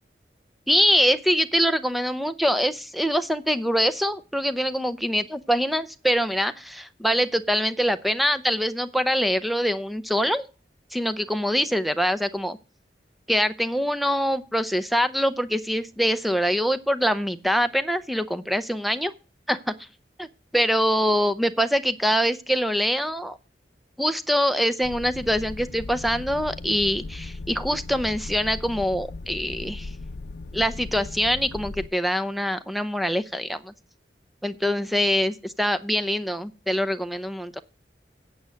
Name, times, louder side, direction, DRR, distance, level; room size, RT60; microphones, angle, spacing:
voice 1, 0.7-10.5 10.9-12.6 13.3-19.1 19.5-19.7 20.2-20.3 20.5-23.4 24.0-29.9 30.5-33.7 34.4-37.6, equal, ahead, 12 dB, 0.6 m, -24 dB
sound 1, 24.8-31.9, left 3 dB, 70° left, 0.6 m, -37 dB
8.7 x 8.2 x 6.3 m, 0.34 s
head